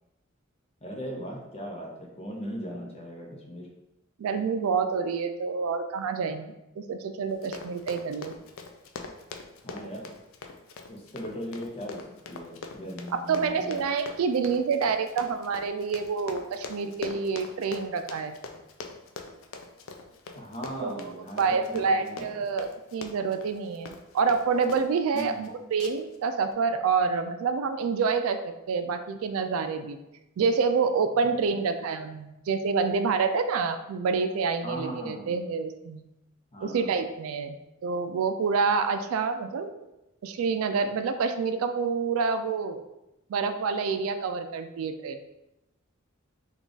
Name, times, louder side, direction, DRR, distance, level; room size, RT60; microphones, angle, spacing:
voice 1, 0.8-3.7 9.6-10.1 10.9-13.8 20.3-22.4 25.1-25.4 31.2-31.3 34.6-35.3 36.5-37.0, equal, 30° left, 0 dB, 0.7 m, -38 dB
voice 2, 4.2-8.3 13.1-18.4 20.8-30.0 30.4-36.0 36.6-37.6 37.8-39.7 40.2-42.8 43.3-45.2, right 5 dB, 80° right, 8 dB, 0.3 m, -27 dB
Run, 7.3-24.9 25.1-25.5 25.8-26.2 26.5-26.6, left 4 dB, 70° left, 0.4 m, -42 dB
3.5 x 2.3 x 3.8 m, 0.92 s
head